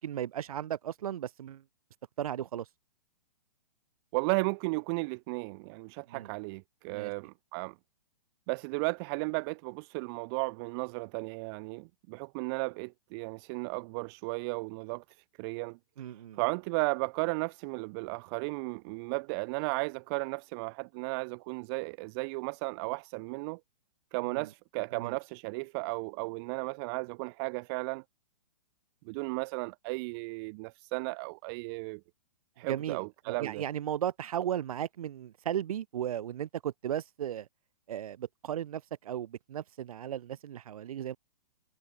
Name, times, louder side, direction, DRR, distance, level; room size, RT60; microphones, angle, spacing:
voice 1, 0.0-1.6 2.2-2.7 6.1-6.3 6.9-7.1 16.0-16.4 24.2-24.5 24.9-25.2 32.7-37.5 37.9-41.2, right 10 dB, 65° right, 7.2 m, -36 dB
voice 2, 4.1-7.7 8.5-15.0 15.4-15.8 16.3-23.6 24.1-28.0 29.1-32.0 32.6-33.6, right 29 dB, 40° right, 3.9 m, -34 dB
hypercardioid pair, 135°, 20 cm